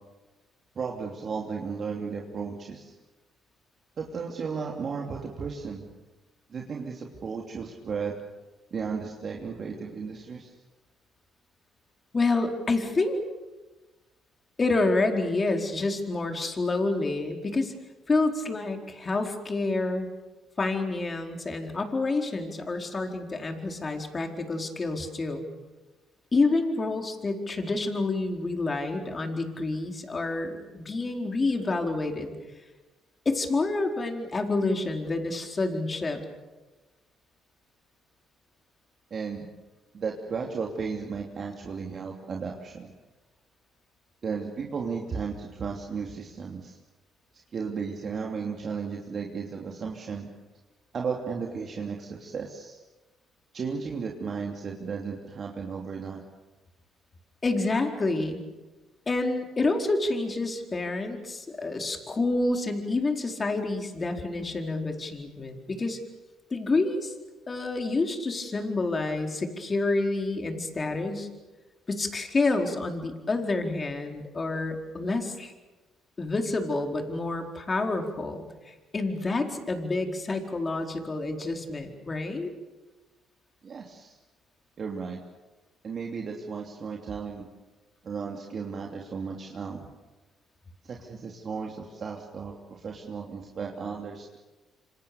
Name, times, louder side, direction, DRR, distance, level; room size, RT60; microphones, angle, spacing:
voice 1, 0.7-2.9 4.0-5.9 6.5-8.1 8.7-10.5 39.1-39.5 39.9-42.9 44.2-46.8 47.5-50.3 50.9-52.8 53.5-56.2 83.6-84.2 84.8-85.2 85.8-87.5 88.0-89.9 90.8-94.4, right 5 dB, 50° right, 0 dB, 2.9 m, -34 dB
voice 2, 12.1-13.2 14.6-17.7 18.1-20.1 20.6-25.5 26.3-32.3 33.2-36.2 57.4-58.4 59.1-66.0 66.5-67.1 67.5-71.3 71.9-75.5 76.2-82.5, left 3 dB, 35° left, 4 dB, 4.5 m, -28 dB
26.5 x 26.5 x 7.1 m, 1.2 s
hypercardioid pair, 60°, 0 cm